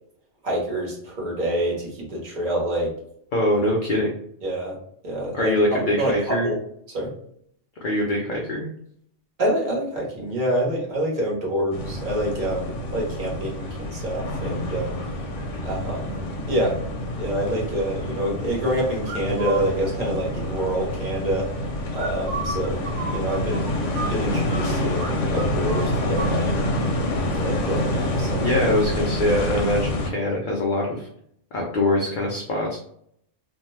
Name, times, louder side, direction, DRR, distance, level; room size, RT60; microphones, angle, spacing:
voice 1, 0.4-2.9 4.4-4.8 5.0-6.5 6.9-7.1 9.4-14.9 15.6-16.1 16.5-16.8 17.2-21.5 21.9-22.8 23.1-23.7 24.0-26.6 27.4-28.5, right 1 dB, 45° right, -3 dB, 1.1 m, -26 dB
voice 2, 3.3-4.1 5.3-6.5 7.8-8.7 28.4-31.1 31.5-32.8, left 1 dB, 55° left, -1 dB, 0.6 m, -23 dB
sound 1, 11.7-30.1, left 1 dB, 80° left, 1.0 m, -27 dB
sound 2, 19.0-19.6 21.9-24.6 25.0-25.1 25.4-26.4, right 3 dB, 75° right, 0.9 m, -32 dB
2.6 x 2.2 x 3.0 m, 0.68 s
omnidirectional pair, 1.2 m